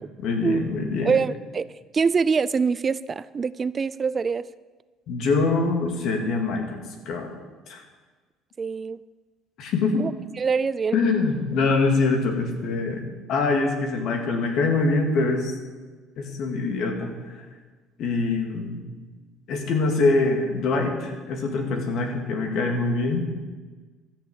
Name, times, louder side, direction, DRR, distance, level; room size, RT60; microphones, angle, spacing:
voice 1, 0.2-1.1 5.1-6.8 7.1-7.3 7.7-7.8 9.6-10.0 10.9-13.0 13.3-15.5 16.2-17.4 18.0-18.8 19.5-23.2, left 3 dB, 65° left, 3 dB, 2.6 m, -24 dB
voice 2, 1.0-1.7 1.9-4.5 8.6-9.0 10.0-10.1 10.4-11.0, right 5 dB, 30° right, 17 dB, 0.4 m, -24 dB
13.0 x 7.0 x 8.2 m, 1.3 s
cardioid pair, 105°, 0 cm